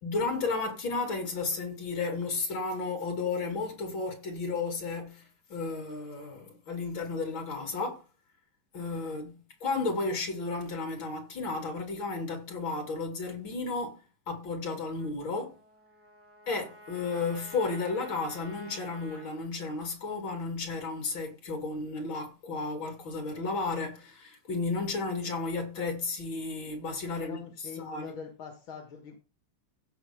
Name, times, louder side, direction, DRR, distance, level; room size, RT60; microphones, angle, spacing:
voice 1, 0.0-8.0 8.7-14.0 14.3-15.5 16.5-27.4 27.8-28.2, left 3 dB, 75° left, 3.4 m, -33 dB
Trumpet, 14.9-19.3, equal, 5° right, 2.8 m, -51 dB
voice 2, 27.2-29.2, left 6 dB, 90° left, 2.5 m, -43 dB
16.0 x 5.6 x 3.6 m
omnidirectional pair, 2.2 m